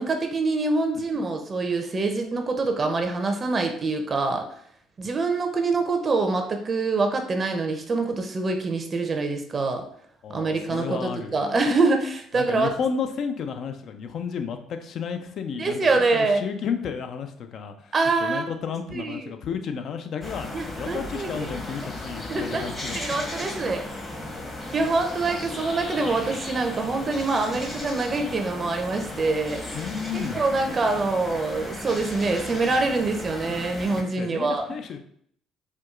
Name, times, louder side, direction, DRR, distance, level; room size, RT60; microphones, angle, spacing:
voice 1, 0.0-4.4 5.0-9.8 10.3-12.7 15.6-16.4 17.9-18.4 18.9-19.2 20.5-21.5 21.8-21.9 22.3-22.6 22.9-23.9 24.7-29.9 30.3-34.7, right 3 dB, 40° right, 4 dB, 0.5 m, -25 dB
voice 2, 10.2-11.4 12.3-17.9 18.2-23.0 29.7-30.4 34.2-35.0, left 6 dB, 60° left, 7 dB, 0.4 m, -32 dB
sound 1, 20.2-34.0, left 2 dB, 30° left, 1.0 m, -35 dB
4.4 x 2.3 x 2.4 m, 0.66 s
supercardioid pair, 70°, 0 cm